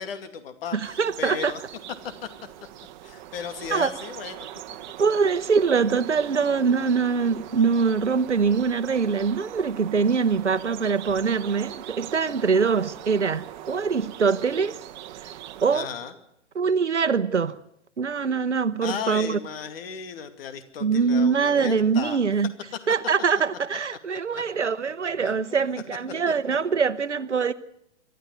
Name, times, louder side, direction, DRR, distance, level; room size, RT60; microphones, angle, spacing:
voice 1, 0.0-1.6 2.2-2.3 3.0-4.5 15.7-16.1 18.8-22.2 22.8-22.9 25.2-25.6, left 7 dB, 55° left, 2.4 m, -35 dB
voice 2, 0.7-1.5 3.7-3.9 5.0-14.8 15.2-15.9 16.5-17.6 18.0-19.4 20.8-22.5 22.9-27.5, right 5 dB, 85° right, 1.0 m, -23 dB
sound 1, 0.8-15.8, right 12 dB, 40° right, 1.2 m, -41 dB
26.0 x 13.0 x 9.3 m
figure-of-eight pair, 115°, 35 cm